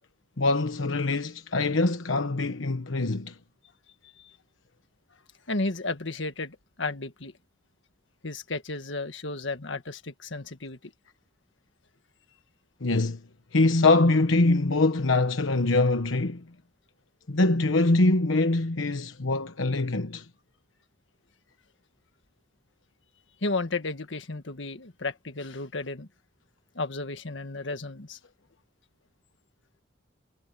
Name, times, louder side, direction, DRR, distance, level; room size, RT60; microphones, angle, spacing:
voice 1, 0.4-3.4 12.8-13.2 13.5-16.4 17.3-20.3, left 2 dB, 85° left, 1.1 m, -23 dB
voice 2, 5.5-7.3 8.2-10.9 23.4-26.1 26.7-28.2, left 3 dB, 70° left, 1.7 m, -33 dB
head